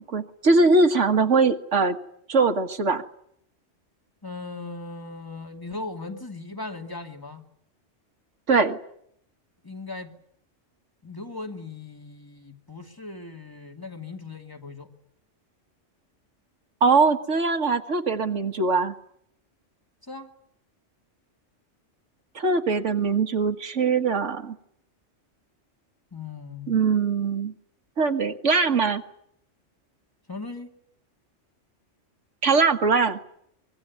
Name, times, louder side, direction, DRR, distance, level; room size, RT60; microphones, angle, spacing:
voice 1, 0.0-2.0 2.3-3.0 8.5-8.8 16.8-19.0 22.4-24.6 26.7-27.5 28.0-29.0 32.4-33.2, right 4 dB, 80° right, 1.9 m, -21 dB
voice 2, 4.2-7.4 9.6-10.2 11.0-14.9 20.0-20.3 26.1-26.8 30.3-30.7, left 3 dB, 15° left, 2.5 m, -38 dB
24.5 x 22.5 x 9.5 m
omnidirectional pair, 1.3 m